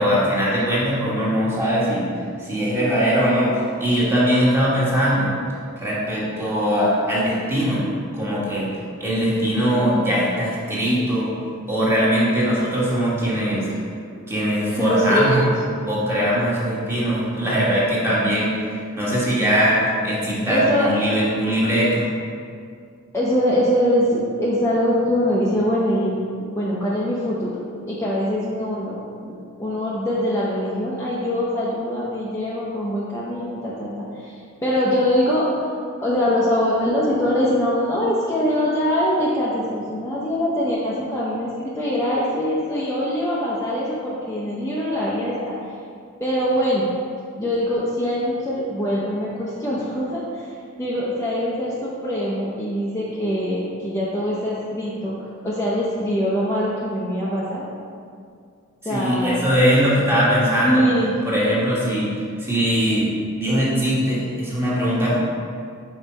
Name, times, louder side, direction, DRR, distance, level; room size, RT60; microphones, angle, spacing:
voice 1, 0.0-2.1 2.4-5.3 5.8-7.8 8.1-8.7 9.0-11.3 11.7-13.7 14.3-15.4 15.9-18.5 19.0-22.1 58.8-60.8 61.2-62.1 62.4-65.2, equal, 10° right, -8 dB, 1.5 m, -21 dB
voice 2, 14.8-15.4 20.5-20.9 23.1-27.5 27.9-29.0 29.2-29.3 29.6-34.3 34.6-35.7 36.0-45.5 46.2-46.8 47.4-50.5 50.8-55.1 55.4-57.7 58.8-59.4 59.9-60.0 60.6-61.1, equal, 15° left, -8 dB, 0.7 m, -23 dB
5.3 x 5.0 x 4.2 m, 2.3 s
head